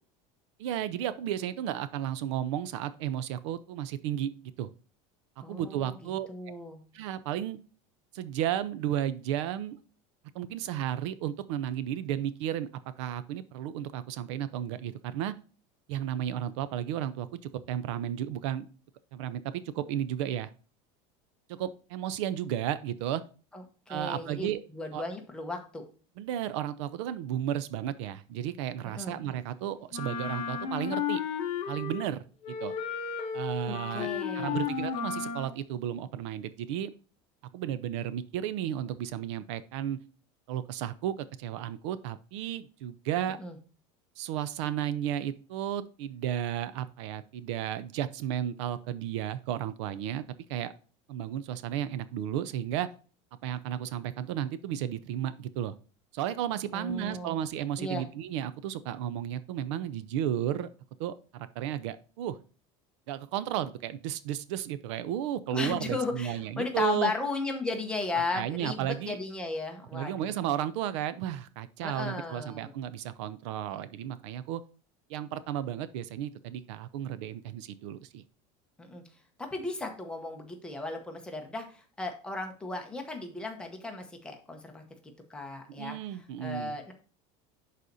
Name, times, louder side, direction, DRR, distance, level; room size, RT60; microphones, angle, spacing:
voice 1, 0.6-4.7 5.5-6.3 6.9-7.6 8.1-9.8 10.3-12.7 13.0-15.3 15.9-18.7 19.1-20.5 21.5-23.2 23.9-24.6 24.9-25.0 26.2-31.2 31.7-32.2 32.6-32.7 33.3-36.9 37.5-40.0 40.5-43.4 44.2-50.2 50.5-50.7 51.1-52.9 53.4-55.7 56.1-60.7 61.0-62.4 63.1-67.1 68.3-69.2 69.9-74.6 75.1-78.2 85.7-86.7, right 11 dB, 75° right, 15 dB, 0.5 m, -33 dB
voice 2, 5.4-6.8 23.5-25.8 28.8-29.2 33.7-34.7 43.4-43.6 56.7-57.4 57.8-58.1 65.5-70.3 71.8-72.7 78.8-79.0 79.4-84.8 85.3-86.0 86.4-86.9, left 3 dB, 5° left, 3 dB, 0.9 m, -35 dB
Wind instrument woodwind instrument, 29.9-32.1 32.4-35.5, left 7 dB, 40° left, 0.8 m, -33 dB
11.0 x 4.1 x 2.6 m, 0.38 s
cardioid pair, 180°, 15 cm